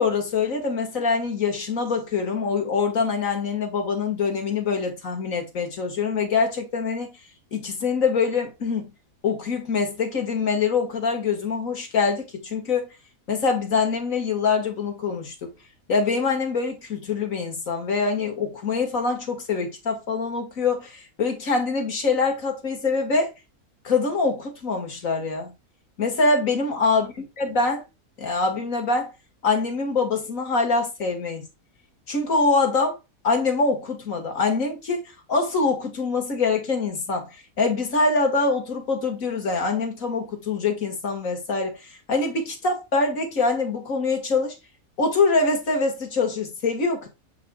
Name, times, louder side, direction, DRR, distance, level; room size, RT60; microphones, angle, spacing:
voice 1, 0.0-7.1 7.5-8.9 9.2-12.9 13.3-15.5 15.9-23.3 23.8-25.5 26.0-27.1 27.4-27.8 28.2-29.1 29.4-31.4 32.1-33.0 33.2-37.3 37.6-44.5 45.0-47.1, left 4 dB, 65° left, 2.4 m, -24 dB
6.6 x 6.5 x 2.4 m
omnidirectional pair, 1.5 m